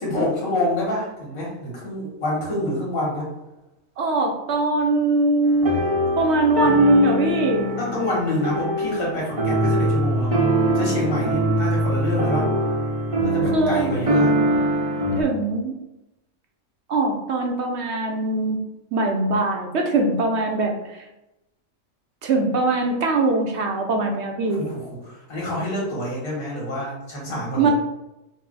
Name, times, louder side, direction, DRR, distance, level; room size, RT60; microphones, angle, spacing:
voice 1, 0.0-3.3 7.8-10.4 10.7-12.7 13.2-14.3 24.5-27.7, left 1 dB, 80° left, -4 dB, 2.0 m, -27 dB
voice 2, 4.0-5.8 6.2-7.7 13.5-13.9 15.2-15.8 16.9-18.6 18.9-21.1 22.2-24.6 27.6-27.7, right 2 dB, 65° right, 2 dB, 0.8 m, -21 dB
sound 1, 5.4-15.2, right 1 dB, 40° right, 0.5 m, -23 dB
5.4 x 2.0 x 3.8 m, 0.95 s
omnidirectional pair, 1.4 m